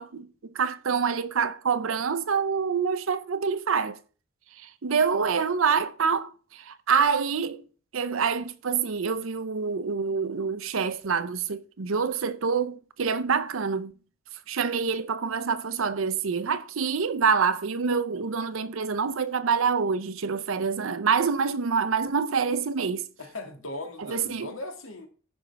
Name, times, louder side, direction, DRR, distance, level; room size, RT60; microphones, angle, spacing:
voice 1, 0.0-4.0 4.6-7.6 7.9-13.9 14.5-23.0 24.1-24.5, right 5 dB, 75° right, 0.6 m, -26 dB
voice 2, 23.2-25.1, left 2 dB, 85° left, 1.9 m, -38 dB
15.0 x 5.3 x 3.3 m
head